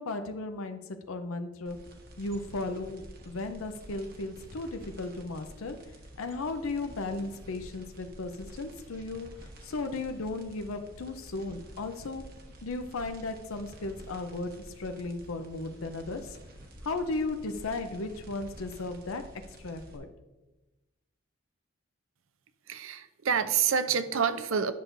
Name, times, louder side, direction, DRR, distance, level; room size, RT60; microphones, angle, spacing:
voice 1, 0.0-1.8 2.2-5.8 6.2-9.3 9.6-12.2 12.6-16.4 16.8-19.2 19.6-20.1, left 2 dB, 85° left, 7 dB, 0.6 m, -35 dB
sound 1, 1.7-20.0, right 1 dB, 45° right, 1.0 m, -49 dB
voice 2, 22.7-24.7, right 7 dB, 75° right, 11 dB, 0.5 m, -27 dB
10.0 x 6.0 x 2.6 m, 1.1 s
head